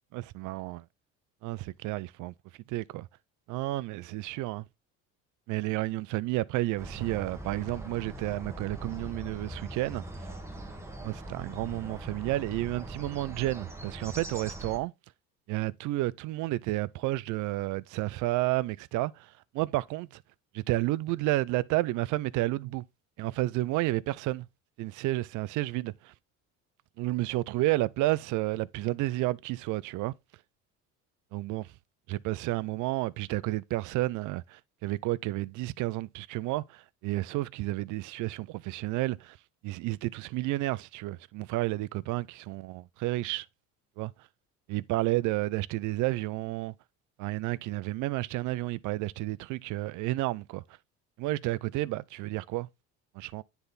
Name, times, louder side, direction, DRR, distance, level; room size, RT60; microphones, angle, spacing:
voice 1, 0.1-0.8 1.4-2.3 2.7-3.1 3.5-4.6 5.5-10.0 11.0-14.9 15.5-20.2 20.5-22.8 23.2-24.5 24.8-26.1 27.0-30.1 31.3-31.7 32.1-39.4 39.6-43.5 44.0-44.1 44.7-46.7 47.2-50.6 51.2-52.7 53.2-53.4, right 18 dB, 65° right, 0.5 m, -31 dB
sound 1, 6.8-14.8, right 1 dB, 10° right, 1.1 m, -41 dB
9.7 x 3.5 x 4.0 m
cardioid pair, 120°, 33 cm